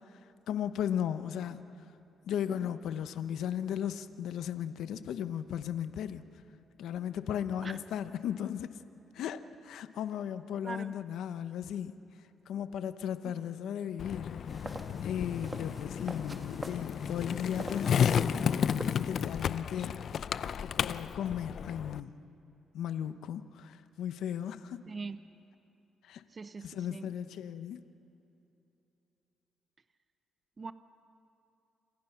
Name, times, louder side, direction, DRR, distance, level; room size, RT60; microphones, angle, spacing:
voice 1, 0.5-1.6 2.2-6.2 6.8-8.7 9.1-11.9 12.5-14.8 15.0-18.5 18.9-20.0 20.6-22.2 22.7-24.9 26.0-26.2 26.6-27.8, left 9 dB, 80° left, 11 dB, 1.0 m, -36 dB
voice 2, 10.6-10.9 24.9-25.2 26.3-27.0 30.6-30.7, right 4 dB, 35° right, 11 dB, 0.9 m, -41 dB
Skateboard, 14.0-22.0, left 8 dB, 60° left, 0.6 m, -32 dB
sound 1, 14.5-19.4, right 2 dB, 15° right, 1.9 m, -45 dB
28.0 x 26.5 x 5.9 m, 2.9 s
cardioid pair, 90°, 0 cm